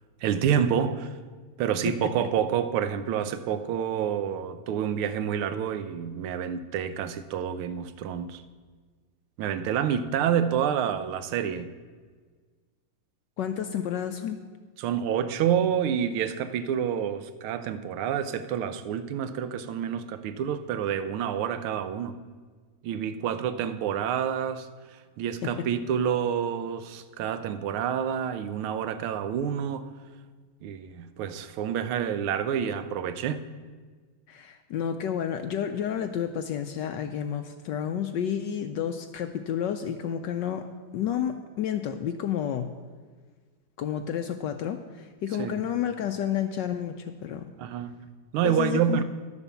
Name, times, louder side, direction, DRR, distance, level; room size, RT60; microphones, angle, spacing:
voice 1, 0.2-1.1 1.6-8.4 9.4-11.7 14.8-22.1 22.8-29.9 30.6-33.4 45.4-45.6 47.6-47.9 48.3-49.0, right 8 dB, 80° right, 11 dB, 1.6 m, -28 dB
voice 2, 13.4-14.4 25.4-25.5 34.3-42.7 43.8-47.5 48.4-49.0, left 9 dB, 75° left, 7 dB, 1.1 m, -30 dB
11.5 x 7.0 x 6.9 m, 1.5 s
omnidirectional pair, 2.3 m